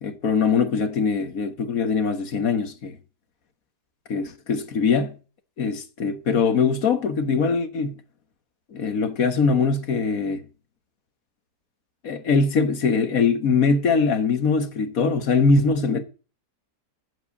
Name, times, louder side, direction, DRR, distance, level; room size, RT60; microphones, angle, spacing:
voice 1, 0.0-3.0 4.1-5.1 5.6-7.9 8.7-10.4 12.0-16.0, left 5 dB, 60° left, 1.7 m, -22 dB
8.3 x 7.8 x 8.3 m
omnidirectional pair, 1.7 m